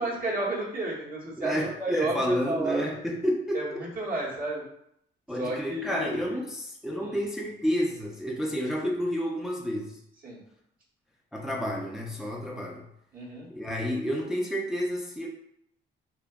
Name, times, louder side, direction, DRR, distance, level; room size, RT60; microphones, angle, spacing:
voice 1, 0.0-2.8 3.5-4.6 5.4-6.4 7.0-7.2 10.2-10.4 13.1-13.5, right 2 dB, 45° right, -6 dB, 0.9 m, -32 dB
voice 2, 1.4-3.8 5.3-10.0 11.3-12.9 13.5-15.3, equal, ahead, -2 dB, 0.4 m, -30 dB
2.5 x 2.2 x 2.2 m, 0.75 s
cardioid pair, 90°, 20 cm